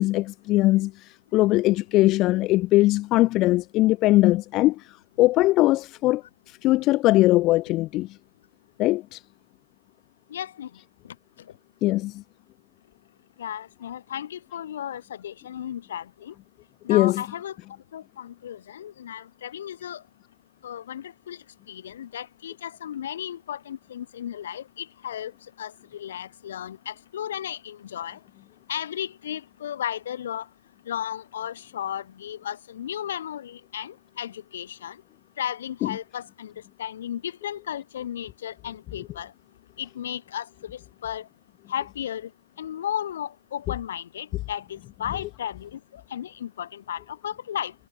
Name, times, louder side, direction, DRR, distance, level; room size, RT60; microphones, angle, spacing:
voice 1, 0.0-8.1 8.8-9.2 11.8-12.2 16.9-17.2 35.8-35.9, left 18 dB, 30° left, 0.5 m, -21 dB
voice 2, 10.3-10.7 13.4-16.3 16.8-17.6 17.9-20.0 20.6-21.4 21.7-25.3 25.6-28.2 28.7-30.5 30.9-35.0 35.4-36.5 36.8-39.3 39.8-41.3 41.7-42.3 42.6-47.7, left 10 dB, 70° left, 5.8 m, -34 dB
hypercardioid pair, 150°, 0 cm